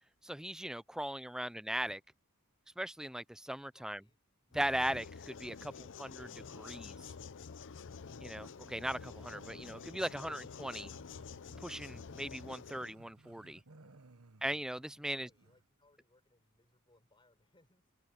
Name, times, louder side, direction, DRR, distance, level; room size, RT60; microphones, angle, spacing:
voice 1, 0.2-2.0 2.8-4.0 4.5-7.0 8.2-10.9 11.6-13.6 14.4-15.3, right 1 dB, 5° right, 0.5 m, -39 dB
voice 2, 3.7-4.2 15.0-17.9, left 2 dB, 25° left, 6.6 m, -71 dB
sound 1, 4.5-12.9, left 5 dB, 60° left, 0.6 m, -49 dB
Growling, 8.3-15.7, right 2 dB, 75° right, 1.5 m, -61 dB
open air
head